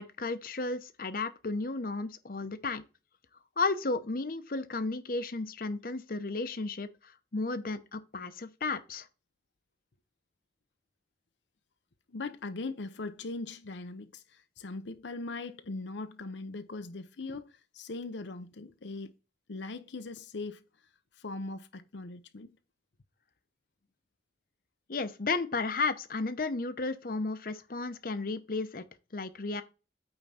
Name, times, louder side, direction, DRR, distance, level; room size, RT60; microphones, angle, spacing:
voice 1, 0.0-2.8 3.6-6.9 7.3-9.1 24.9-28.8 29.1-29.6, left 3 dB, 50° left, 0.8 m, -33 dB
voice 2, 12.1-19.1 19.5-20.6 21.2-22.5, left 3 dB, 85° left, 0.7 m, -40 dB
8.8 x 3.7 x 5.7 m
head